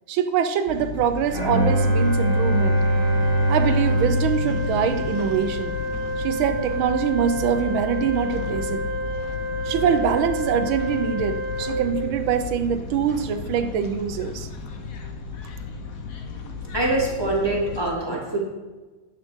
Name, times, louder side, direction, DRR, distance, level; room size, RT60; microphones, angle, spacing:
voice 1, 0.1-2.8 3.5-5.7 6.2-8.9 9.6-14.5, right 8 dB, 75° right, 10 dB, 1.5 m, -24 dB
sound 1, 0.7-17.9, left 5 dB, 50° left, 1.2 m, -34 dB
Bowed string instrument, 1.3-5.5, right 1 dB, 35° left, 3.1 m, -22 dB
Organ, 1.5-12.6, equal, 75° left, 2.1 m, -30 dB
voice 2, 16.7-18.4, right 2 dB, 10° right, -3 dB, 2.4 m, -24 dB
10.5 x 7.7 x 5.1 m, 1.3 s
omnidirectional pair, 2.3 m